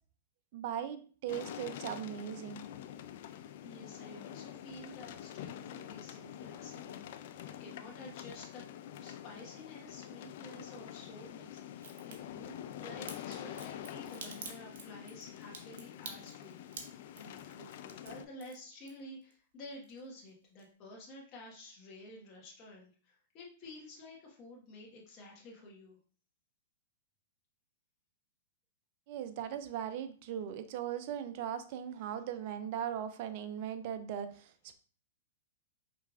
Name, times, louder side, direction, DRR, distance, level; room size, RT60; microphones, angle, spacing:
voice 1, 0.5-2.6 29.1-34.7, right 9 dB, 50° right, 10 dB, 0.5 m, -39 dB
sound 1, 1.3-18.2, left 11 dB, 60° left, 0.3 m, -46 dB
voice 2, 3.2-8.6 9.0-16.6 17.1-26.0, left 1 dB, 35° left, -2 dB, 1.4 m, -51 dB
Crack, 11.8-12.2 13.1-19.3 19.6-20.3 20.6-20.7, right 5 dB, 70° right, 0.9 m, -47 dB
4.8 x 3.3 x 2.4 m, 0.42 s
hypercardioid pair, 115°, 0 cm